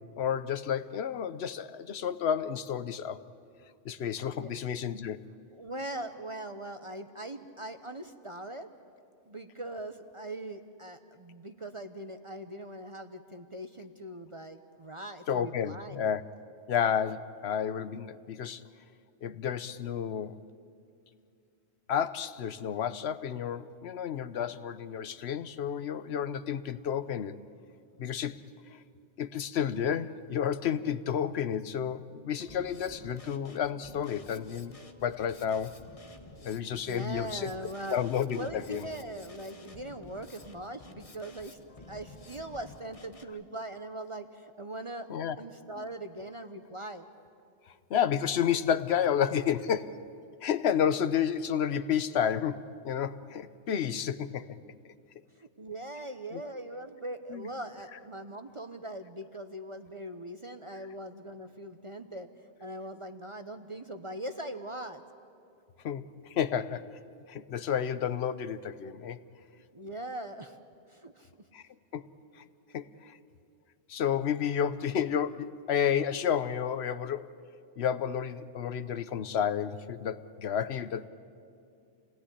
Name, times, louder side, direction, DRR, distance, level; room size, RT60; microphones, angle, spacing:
voice 1, 0.0-3.2 3.8-5.2 15.3-16.2 16.7-18.6 19.2-20.4 21.9-27.4 28.0-28.4 28.7-28.8 29.2-34.8 35.0-35.8 36.4-37.5 37.9-38.9 45.1-45.4 45.8-45.9 47.9-50.0 50.4-54.6 56.3-56.4 57.3-57.5 65.8-66.9 67.3-69.2 71.5-71.6 71.9-72.1 72.7-73.2 73.9-77.3 77.8-81.1, left 8 dB, 65° left, 13 dB, 1.1 m, -31 dB
voice 2, 5.5-8.7 9.3-16.1 36.9-38.1 38.3-41.6 41.9-45.1 45.4-47.1 51.0-51.1 55.4-62.3 62.6-65.0 69.7-70.6 70.9-71.3, right 1 dB, 30° right, 7 dB, 0.9 m, -41 dB
Drum kit, 32.4-43.2, left 2 dB, 30° left, 1.2 m, -51 dB
28.5 x 18.0 x 10.0 m, 2.5 s
omnidirectional pair, 1.2 m